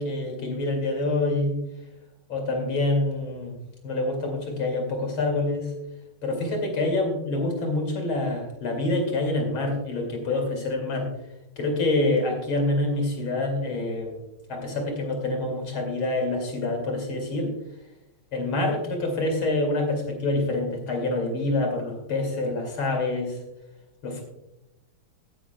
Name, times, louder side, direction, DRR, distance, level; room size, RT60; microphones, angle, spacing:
voice 1, 0.0-1.6 2.3-3.6 3.8-5.7 6.2-11.1 11.6-14.2 14.5-17.5 18.3-23.4 24.0-24.2, left 2 dB, 75° left, 2 dB, 3.2 m, -26 dB
17.5 x 9.0 x 2.2 m, 0.90 s
omnidirectional pair, 2.2 m